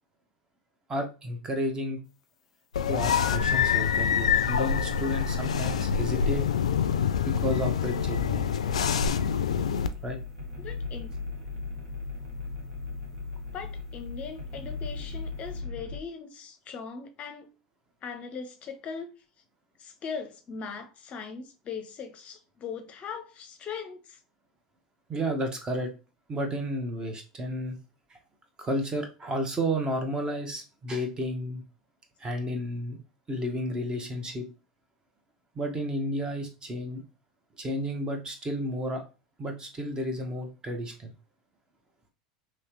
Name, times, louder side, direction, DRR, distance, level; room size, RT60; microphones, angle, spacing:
voice 1, 0.9-2.0 2.9-6.4 7.2-8.5 10.0-10.2 25.1-25.9 26.3-27.8 28.6-31.6 32.2-33.0 33.3-34.4 35.6-37.0 37.6-39.0 39.4-41.1, equal, 25° right, 1.0 m, -32 dB
sound 1, 2.7-9.9, left 7 dB, 85° left, 0.3 m, -26 dB
sound 2, 8.6-16.0, left 3 dB, 70° right, 1.4 m, -37 dB
voice 2, 10.6-11.1 13.5-17.5 18.0-19.1 19.8-24.2, left 6 dB, 40° left, 0.6 m, -39 dB
3.2 x 2.9 x 3.0 m
hypercardioid pair, 90°, 3 cm